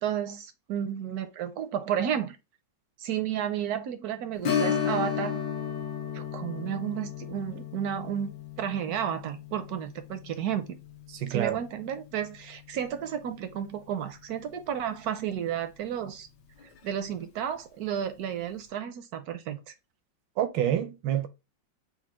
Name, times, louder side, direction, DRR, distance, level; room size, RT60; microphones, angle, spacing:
voice 1, 0.0-2.4 3.0-5.4 6.1-8.3 8.6-10.8 11.3-16.3 16.8-19.7, right 9 dB, 75° right, 0.9 m, -32 dB
Strum, 4.4-13.6 14.0-14.1 16.6-16.8 17.2-17.3, left 7 dB, 80° left, 1.6 m, -34 dB
voice 2, 11.2-11.6 20.4-21.3, right 10 dB, 90° right, 1.4 m, -27 dB
4.3 x 2.2 x 4.3 m
omnidirectional pair, 2.0 m